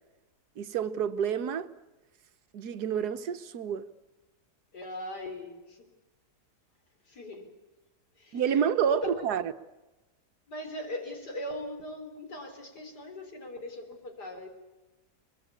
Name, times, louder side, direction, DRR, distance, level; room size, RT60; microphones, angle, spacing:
voice 1, 0.6-1.7 2.5-3.9 8.3-9.5, right 8 dB, 75° right, 1.6 m, -28 dB
voice 2, 4.7-5.9 7.1-7.5 8.2-8.4 9.0-9.3 10.5-14.5, left 1 dB, 90° left, 4.4 m, -40 dB
23.5 x 22.5 x 8.5 m
omnidirectional pair, 1.7 m